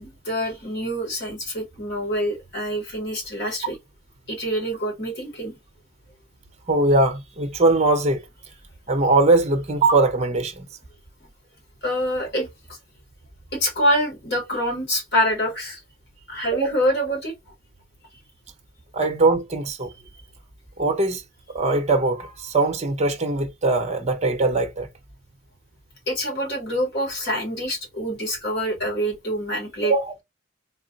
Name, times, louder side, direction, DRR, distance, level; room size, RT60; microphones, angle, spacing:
voice 1, 0.0-3.8 4.3-5.5 11.8-12.5 13.5-15.8 16.3-17.3 26.1-29.9, equal, 55° left, 2.6 m, -25 dB
voice 2, 6.7-8.2 8.9-10.7 16.5-16.7 18.9-19.9 20.8-21.2 21.5-24.9 29.8-30.1, right 2 dB, 35° right, 0.7 m, -21 dB
3.9 x 2.0 x 3.9 m
head